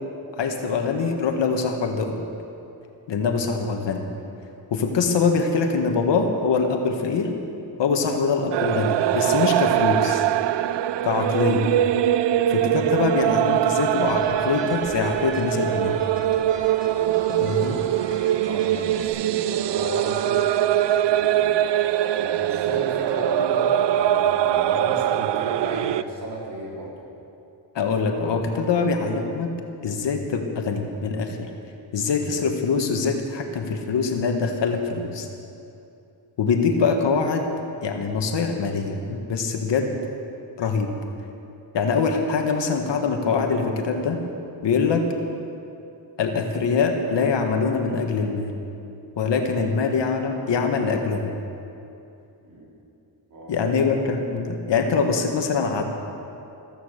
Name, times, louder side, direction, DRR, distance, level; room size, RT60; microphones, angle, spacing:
voice 1, 0.4-2.2 3.1-4.1 4.7-7.3 7.8-10.2 11.0-11.7 12.5-16.0 17.3-17.8 27.8-29.5 29.8-31.5 31.9-35.3 36.4-37.5 37.8-40.0 40.6-40.9 41.7-44.2 44.6-45.1 46.2-48.6 49.2-51.3 53.5-55.8, left 5 dB, 70° left, 4 dB, 1.7 m, -23 dB
sound 1, 8.5-26.0, right 12 dB, 70° right, 0.5 m, -22 dB
sound 2, 14.1-19.1, right 1 dB, 25° right, 3.0 m, -41 dB
voice 2, 18.4-20.4 21.1-21.6 22.1-27.0 52.4-52.7 53.3-53.7, right 1 dB, 50° right, -4 dB, 4.4 m, -34 dB
14.5 x 14.5 x 6.6 m, 2.7 s
wide cardioid pair, 130°, 44 cm